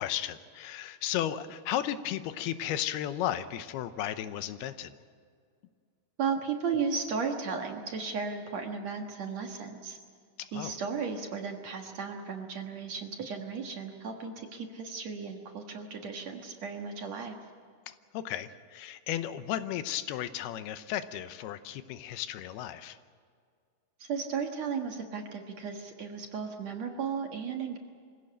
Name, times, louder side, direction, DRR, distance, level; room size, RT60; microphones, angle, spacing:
voice 1, 0.0-5.0 10.4-10.8 17.9-23.0, left 11 dB, 85° left, 11 dB, 2.9 m, -34 dB
voice 2, 6.2-10.0 10.5-17.4 24.0-27.8, right 5 dB, 55° right, 3 dB, 2.3 m, -35 dB
25.5 x 16.0 x 8.8 m, 2.1 s
omnidirectional pair, 4.4 m